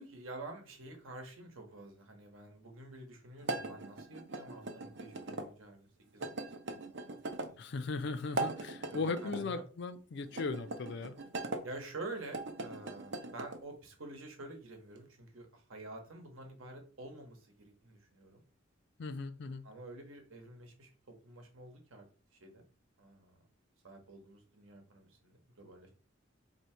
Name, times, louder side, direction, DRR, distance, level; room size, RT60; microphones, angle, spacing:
voice 1, 0.0-5.9 6.1-6.3 6.7-6.8 7.1-7.5 8.9-9.6 11.6-18.4 19.6-22.0 22.3-22.6 23.0-23.4 23.8-25.9, right 2 dB, 80° right, 1.0 m, -48 dB
sound 1, 3.4-5.5 6.2-7.5 8.2-9.4 10.3-11.6 12.2-13.6, right 2 dB, 55° right, 0.6 m, -40 dB
voice 2, 7.6-11.1 19.0-19.6, left 4 dB, 55° left, 0.4 m, -38 dB
2.8 x 2.7 x 4.3 m
head